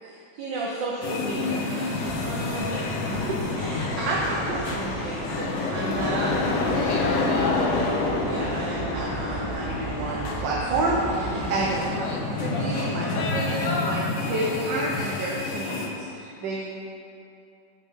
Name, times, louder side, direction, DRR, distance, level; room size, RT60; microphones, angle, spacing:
voice 1, 0.0-2.8 3.0-6.9 8.2-11.8 12.4-16.6, right 2 dB, 85° right, -3 dB, 1.6 m, -30 dB
sound 1, 1.0-15.9, left 3 dB, 85° left, 1.6 m, -28 dB
sound 2, 2.0-14.7, right 3 dB, 40° right, 0.8 m, -37 dB
voice 2, 6.9-7.7 11.9-12.4, left 2 dB, 40° left, -1 dB, 0.6 m, -31 dB
6.2 x 5.8 x 6.8 m, 2.6 s
omnidirectional pair, 1.9 m